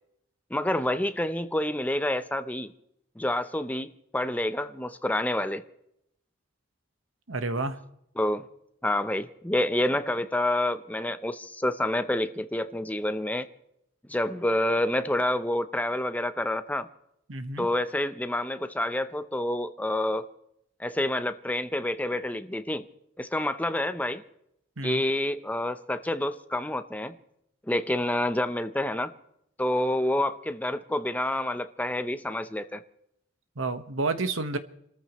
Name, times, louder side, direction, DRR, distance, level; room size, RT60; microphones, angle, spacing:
voice 1, 0.5-2.7 3.2-5.6 8.2-8.4 8.8-13.5 14.1-16.9 17.6-20.3 20.8-22.9 23.2-24.2 24.8-27.2 27.7-29.1 29.6-32.8, left 1 dB, 10° left, 0.6 m, -28 dB
voice 2, 7.3-7.8 17.3-17.7 24.8-25.0 33.6-34.6, right 3 dB, 85° right, 1.3 m, -30 dB
29.0 x 14.0 x 3.1 m
head